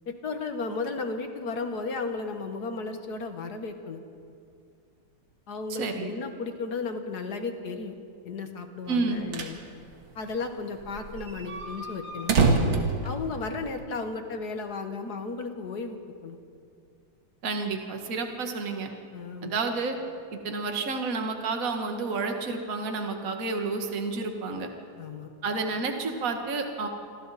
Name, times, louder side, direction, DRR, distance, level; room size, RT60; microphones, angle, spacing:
voice 1, 0.1-4.0 5.5-8.0 8.2-9.6 10.2-12.3 13.0-16.4 19.1-19.6 25.0-25.3, left 4 dB, 50° left, 6 dB, 2.0 m, -34 dB
voice 2, 5.7-6.1 8.9-9.2 17.4-18.9 19.4-20.0 20.3-24.7 25.4-26.9, right 4 dB, 45° right, 4 dB, 2.0 m, -30 dB
sound 1, 9.0-9.6 9.9-10.0 10.2-10.3 10.8-13.8, right 3 dB, 65° right, 2.6 m, -26 dB
27.5 x 26.0 x 4.2 m, 2.3 s
omnidirectional pair, 2.2 m